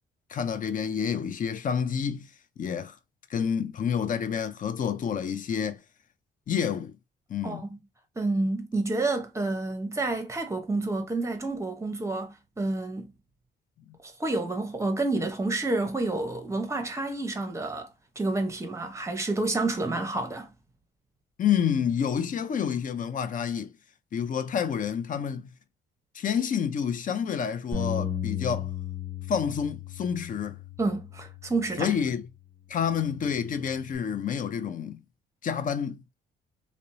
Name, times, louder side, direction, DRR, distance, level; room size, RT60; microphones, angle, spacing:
voice 1, 0.3-2.3 2.6-3.0 3.3-5.8 6.5-7.0 7.3-7.7 13.9-14.0 21.4-23.7 24.1-25.5 26.1-28.7 29.3-30.6 31.8-32.3 32.7-35.0 35.4-36.0, left 7 dB, 45° left, 0.4 m, -29 dB
voice 2, 7.4-7.8 8.2-13.1 14.0-17.9 18.2-20.5 30.8-31.9, right 2 dB, 15° right, 0.7 m, -29 dB
Bass guitar, 27.7-32.2 32.8-34.0, left 8 dB, 15° left, 1.3 m, -36 dB
2.8 x 2.0 x 2.6 m
cardioid pair, 90°, 20 cm